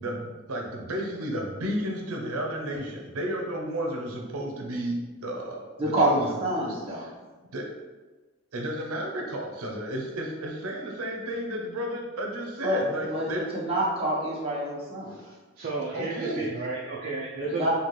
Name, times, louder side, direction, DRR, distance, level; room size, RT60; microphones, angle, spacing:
voice 1, 0.0-6.4 6.9-7.1 7.5-7.7 8.5-13.5 15.9-16.4, right 1 dB, 90° right, 0 dB, 0.6 m, -32 dB
voice 2, 5.8-7.1 12.6-12.8 13.1-15.1 17.4-17.7, right 1 dB, 25° right, -6 dB, 0.9 m, -27 dB
voice 3, 15.1-17.7, right 3 dB, 45° right, -5 dB, 0.5 m, -33 dB
4.2 x 2.3 x 3.1 m, 1.3 s
head